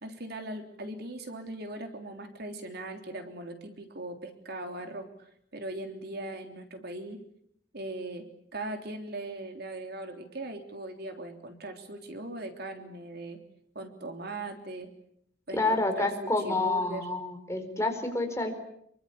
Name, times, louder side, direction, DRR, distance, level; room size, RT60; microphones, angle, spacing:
voice 1, 0.0-5.1 5.5-7.2 7.7-13.4 13.8-14.9 15.5-17.1, right 2 dB, 60° right, 5 dB, 3.5 m, -39 dB
voice 2, 15.5-18.5, left 2 dB, 15° left, 5 dB, 4.5 m, -28 dB
26.5 x 24.0 x 8.6 m, 0.72 s
head